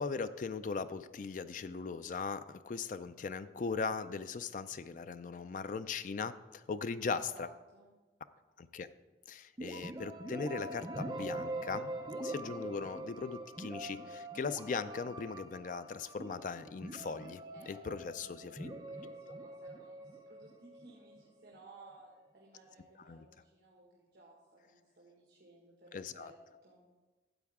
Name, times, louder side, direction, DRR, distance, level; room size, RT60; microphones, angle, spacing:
voice 1, 0.0-7.5 8.6-8.9 9.3-11.9 12.2-17.4 17.7-18.7 23.1-23.3 25.9-26.3, left 5 dB, 45° left, 12 dB, 0.4 m, -39 dB
voice 2, 7.1-7.9 17.5-26.4 26.6-26.8, right 2 dB, 65° right, -3 dB, 1.7 m, -59 dB
sound 1, 9.6-21.3, right 1 dB, 20° right, 0.7 m, -44 dB
13.0 x 8.0 x 3.6 m, 1.2 s
head